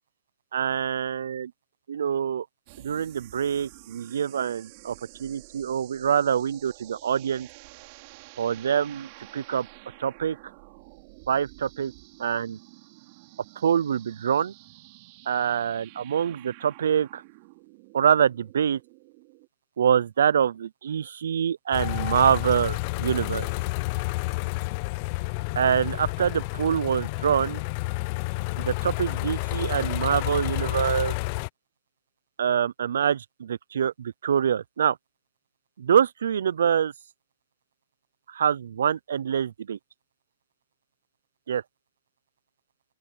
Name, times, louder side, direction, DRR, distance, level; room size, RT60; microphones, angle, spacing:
voice 1, 0.5-1.5 1.9-2.4 2.8-7.5 8.4-9.7 10.0-10.4 11.3-11.9 12.2-12.6 13.6-14.5 15.3-17.2 17.9-18.8 19.8-23.5 25.6-27.6 28.6-31.1 32.4-35.0 35.8-36.9 38.3-39.8 41.5-41.6, right 8 dB, 75° right, 0.5 m, -25 dB
sound 1, 2.7-19.5, right 26 dB, 45° right, 4.6 m, -50 dB
sound 2, 21.7-31.5, left 25 dB, 40° left, 0.8 m, -30 dB
open air
hypercardioid pair, 135°, 0 cm